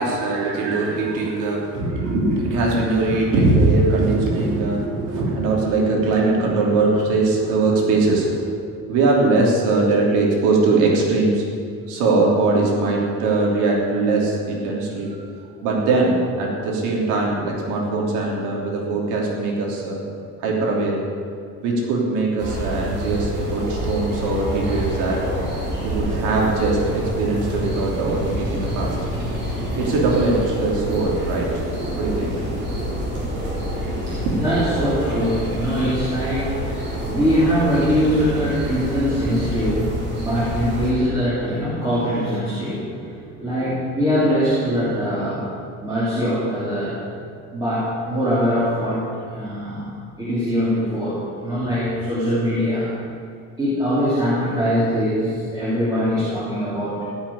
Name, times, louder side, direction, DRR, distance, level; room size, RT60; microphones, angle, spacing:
voice 1, 0.0-8.6 8.9-11.4 11.9-15.2 15.6-20.0 20.4-21.0 21.6-25.2 25.8-29.0 29.5-31.6 31.9-32.3 34.2-34.5, right 3 dB, 65° right, -2 dB, 3.3 m, -21 dB
sound 1, 22.4-40.9, equal, 35° right, 3.9 m, -27 dB
voice 2, 33.5-45.5 45.8-47.0 47.5-49.0 49.3-52.9 53.6-57.0, equal, 10° right, -9 dB, 3.1 m, -22 dB
16.5 x 6.4 x 10.0 m, 2.3 s
cardioid pair, 175°, 32 cm